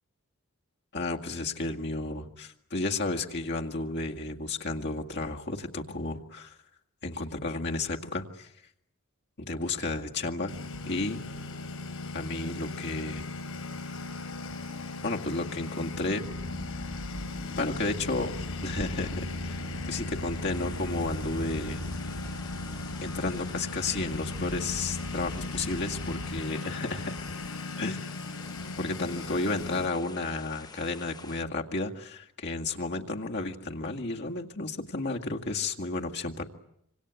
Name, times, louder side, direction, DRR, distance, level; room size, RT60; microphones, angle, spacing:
voice 1, 0.9-6.6 7.0-8.5 9.4-10.5 10.8-11.2 12.1-13.3 15.0-16.2 17.6-18.3 18.6-19.6 19.8-21.8 23.0-27.1 27.8-28.1 28.8-36.4, left 3 dB, 50° left, 2 dB, 2.1 m, -32 dB
Engine, 10.5-29.9, left 3 dB, 75° left, 5.5 m, -38 dB
sound 1, 16.2-26.4, equal, 30° right, 1.5 m, -40 dB
sound 2, 17.9-31.4, left 3 dB, 20° left, 1.1 m, -49 dB
26.5 x 26.0 x 8.4 m, 0.76 s
head